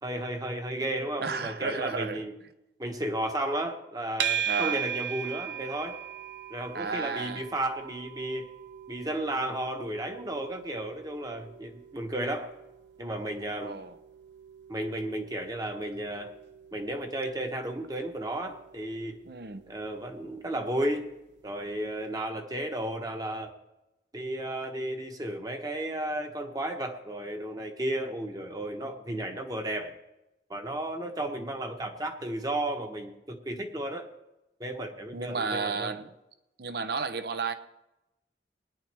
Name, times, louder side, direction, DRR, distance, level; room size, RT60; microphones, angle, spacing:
voice 1, 0.0-2.3 2.8-6.0 6.5-8.5 8.9-12.5 13.0-13.7 14.7-16.3 16.7-19.2 19.7-21.1 21.4-23.5 24.1-29.9 30.5-34.1 34.6-35.9, right 1 dB, 20° right, 1.1 m, -33 dB
voice 2, 1.2-2.2 4.5-4.8 6.7-7.4 13.6-13.9 19.2-19.7 35.1-36.1 36.6-37.5, right 4 dB, 60° right, 0.7 m, -33 dB
sound 1, 4.2-21.4, right 9 dB, 90° right, 0.8 m, -39 dB
20.0 x 10.0 x 3.4 m
head